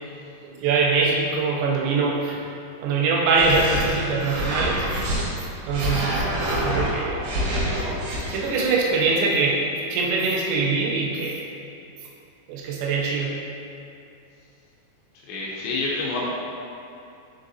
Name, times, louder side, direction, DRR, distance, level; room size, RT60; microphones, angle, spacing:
voice 1, 0.6-2.4 2.8-4.9 5.7-7.2 8.3-11.4 12.5-13.4, right 4 dB, 90° right, -2 dB, 2.5 m, -23 dB
sound 1, 3.3-5.2 5.7-8.4, equal, 75° right, 2.1 m, -26 dB
voice 2, 15.3-16.3, left 3 dB, 80° left, -5 dB, 2.7 m, -27 dB
10.5 x 3.5 x 2.7 m, 2.6 s
omnidirectional pair, 5.6 m